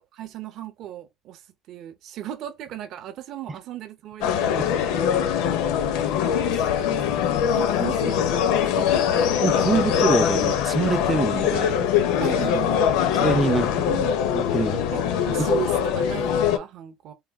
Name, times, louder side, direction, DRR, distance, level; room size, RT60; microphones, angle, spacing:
voice 1, 0.2-1.4 1.7-5.3 6.3-9.1 12.2-12.9 13.5-13.6 14.9-17.1, right 11 dB, 55° right, 0.7 m, -36 dB
sound 1, 4.2-16.6, left 8 dB, 90° left, 0.7 m, -22 dB
voice 2, 9.4-11.8 13.2-14.8 15.4-15.5, right 3 dB, 15° right, 0.4 m, -25 dB
3.5 x 2.2 x 3.4 m
cardioid pair, 160°, 0 cm